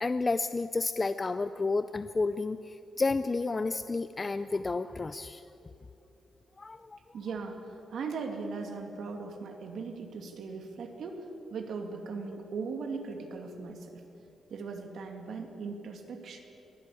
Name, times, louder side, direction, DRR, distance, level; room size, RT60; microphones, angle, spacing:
voice 1, 0.0-5.4 6.6-7.0, left 3 dB, 20° left, 12 dB, 0.4 m, -31 dB
voice 2, 7.1-7.6 7.9-11.3 11.5-14.0 14.5-16.4, right 4 dB, 65° right, 4 dB, 2.3 m, -38 dB
23.0 x 16.0 x 8.5 m, 2.8 s
wide cardioid pair, 170°, 0 cm